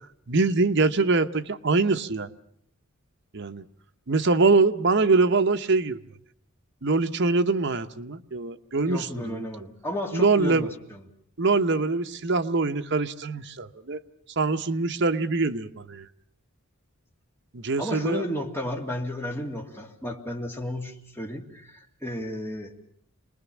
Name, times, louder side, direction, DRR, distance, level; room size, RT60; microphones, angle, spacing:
voice 1, 0.3-2.3 3.3-3.6 4.1-6.0 6.8-9.5 10.1-10.7 11.4-14.0 14.4-16.1 17.5-18.2, right 3 dB, 55° right, 1.0 m, -23 dB
voice 2, 8.9-11.1 17.8-22.7, equal, 10° left, 2.6 m, -33 dB
27.5 x 20.5 x 7.2 m
head